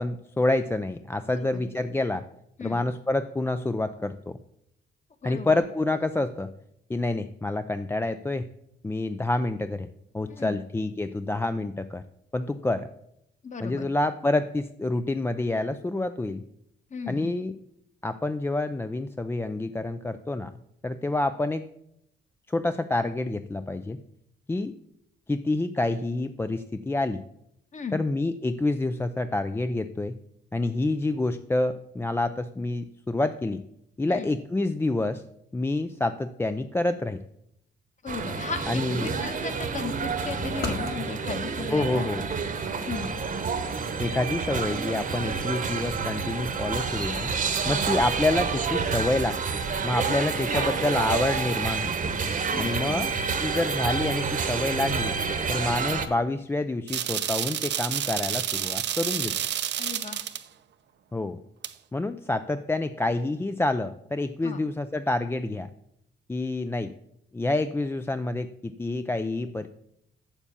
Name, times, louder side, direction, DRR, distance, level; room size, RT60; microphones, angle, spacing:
voice 1, 0.0-2.2 2.6-4.4 5.2-6.5 6.9-8.5 8.8-9.9 10.1-12.0 12.3-12.9 13.6-16.4 17.1-17.5 18.0-20.5 20.8-21.6 22.5-24.0 24.5-24.7 25.3-27.2 27.9-30.2 30.5-33.6 34.0-35.2 35.5-37.2 38.7-39.2 41.7-42.2 44.0-47.3 47.7-52.1 52.6-53.1 53.4-55.1 55.5-59.3 61.1-61.4 61.9-65.7 66.3-66.9 67.3-69.7, left 2 dB, 10° left, 10 dB, 0.4 m, -28 dB
voice 2, 1.3-1.7 2.6-2.8 5.2-5.6 10.3-10.6 13.4-13.9 16.9-17.4 27.7-28.0 34.1-34.4 38.0-42.1 42.9-43.1 47.6-47.8 50.5-50.7 52.5-53.1 59.8-60.3 64.4-64.6, left 5 dB, 40° left, 8 dB, 1.3 m, -36 dB
sound 1, 38.1-56.1, right 5 dB, 40° right, 1.1 m, -29 dB
sound 2, 40.4-44.2, left 3 dB, 55° left, 1.9 m, -40 dB
sound 3, 56.9-60.4 61.6-61.7, right 10 dB, 60° right, 0.7 m, -29 dB
7.3 x 7.0 x 6.9 m, 0.78 s
cardioid pair, 90°, 20 cm